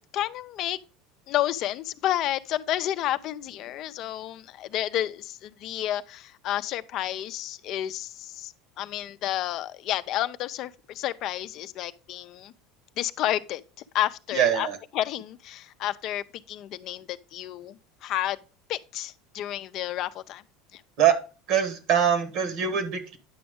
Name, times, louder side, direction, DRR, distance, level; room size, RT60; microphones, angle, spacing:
voice 1, 0.1-0.8 1.3-12.5 13.0-13.6 13.9-14.7 14.9-18.4 18.7-20.4 20.7-20.8, left 13 dB, 55° left, 0.4 m, -30 dB
voice 2, 14.3-14.8 21.0-21.2 21.5-23.2, right 9 dB, 60° right, 1.4 m, -23 dB
9.4 x 6.0 x 3.6 m
supercardioid pair, 115°, 0 cm